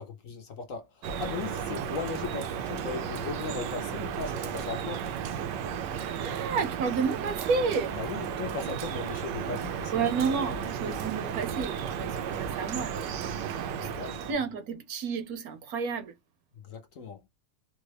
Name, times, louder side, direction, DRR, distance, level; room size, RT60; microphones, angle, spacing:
voice 1, 0.0-5.1 8.0-11.0 13.7-14.3 16.5-17.2, left 5 dB, 60° left, 0.9 m, -38 dB
Drip, 1.0-14.3, right 8 dB, 85° right, 1.3 m, -34 dB
voice 2, 5.9-7.9 9.9-13.1 13.8-13.9 14.3-16.1, right 5 dB, 70° right, 1.0 m, -31 dB
3.7 x 2.2 x 3.2 m
omnidirectional pair, 1.8 m